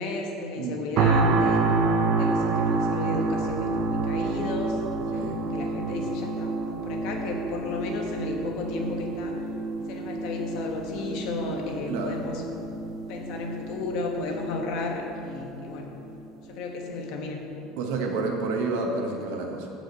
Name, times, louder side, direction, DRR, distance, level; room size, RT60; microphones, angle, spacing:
voice 1, 0.0-1.7 2.1-9.4 9.9-12.4 13.1-15.9 16.5-17.4, left 3 dB, 60° left, 2 dB, 1.2 m, -33 dB
sound 1, 1.0-16.0 16.5-16.6, right 3 dB, 45° right, 0.6 m, -28 dB
voice 2, 11.9-12.2 17.8-19.7, right 3 dB, 80° right, 2 dB, 1.3 m, -29 dB
14.5 x 5.1 x 4.1 m, 2.9 s
cardioid pair, 165°, 0 cm